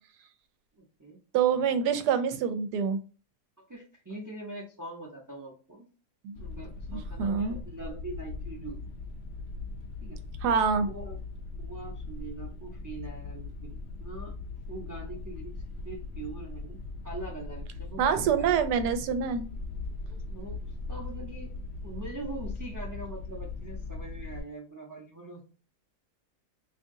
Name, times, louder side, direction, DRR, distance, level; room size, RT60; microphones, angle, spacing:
voice 1, 0.8-1.2 3.7-5.9 6.3-8.8 10.0-10.2 10.8-11.2 11.6-14.3 14.7-15.5 15.8-16.8 17.0-18.6 20.1-20.6 20.9-21.5 21.8-25.4, right 2 dB, 30° right, -2 dB, 0.3 m, -42 dB
voice 2, 1.3-3.0 6.2-6.4 6.9-7.5 10.4-10.9 18.0-19.5, right 7 dB, 85° right, 9 dB, 1.2 m, -26 dB
sound 1, 6.4-24.4, left 3 dB, 65° left, 0.6 m, -39 dB
2.9 x 2.6 x 3.6 m, 0.35 s
omnidirectional pair, 1.7 m